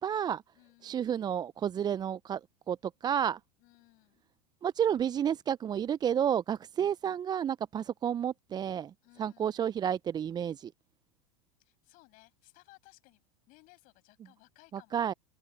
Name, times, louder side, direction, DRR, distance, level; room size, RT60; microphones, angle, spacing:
voice 1, 0.0-0.4 0.8-2.4 2.7-3.4 4.6-8.9 9.2-10.7 14.7-15.1, right 9 dB, 25° right, 0.5 m, -31 dB
voice 2, 0.5-1.1 3.6-4.2 9.0-9.7 11.6-15.0, left 23 dB, 50° left, 7.5 m, -61 dB
open air
hypercardioid pair, 90°, 18 cm